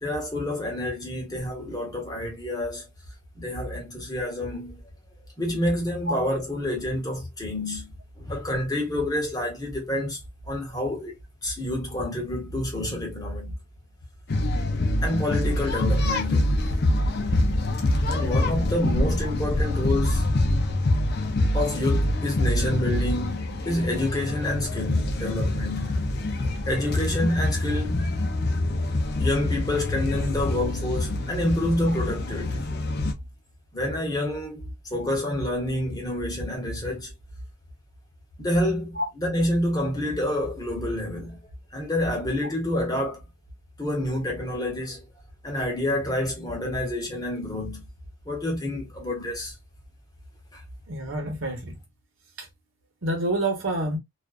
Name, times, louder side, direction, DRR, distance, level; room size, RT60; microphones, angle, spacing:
voice 1, 0.0-2.8 3.4-4.8 5.4-10.2 10.5-11.1 11.4-13.5 15.0-16.6 18.0-20.2 21.5-26.0 26.7-28.1 29.2-32.7 33.7-37.1 38.4-41.4 41.7-43.2 43.8-45.0 45.4-47.8 48.3-49.5 50.5-50.6, left 1 dB, 20° left, 1.0 m, -28 dB
sound 1, 14.3-33.1, left 1 dB, 50° left, 0.5 m, -25 dB
voice 2, 50.9-51.8 53.0-54.0, right 1 dB, 70° right, 1.0 m, -27 dB
2.4 x 2.3 x 2.3 m
head